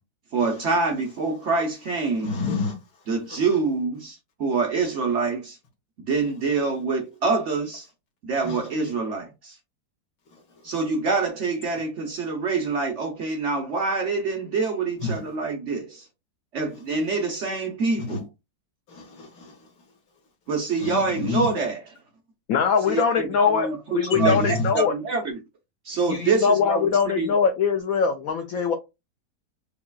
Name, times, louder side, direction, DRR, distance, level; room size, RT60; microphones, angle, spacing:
voice 1, 0.3-2.4 3.1-5.6 6.1-7.9 8.2-9.6 10.6-16.1 16.5-18.2 20.5-21.8 22.9-25.4 25.8-27.3, right 4 dB, 55° right, 0.8 m, -26 dB
voice 2, 2.2-2.7 3.3-3.4 8.4-8.6 15.0-15.2 18.1-18.2 18.9-19.6 20.8-21.5 24.1-24.7, left 3 dB, 55° left, 1.5 m, -28 dB
voice 3, 22.5-23.7 23.9-24.9 26.1-28.7, left 6 dB, 70° left, 0.8 m, -22 dB
5.5 x 2.3 x 2.3 m
omnidirectional pair, 1.9 m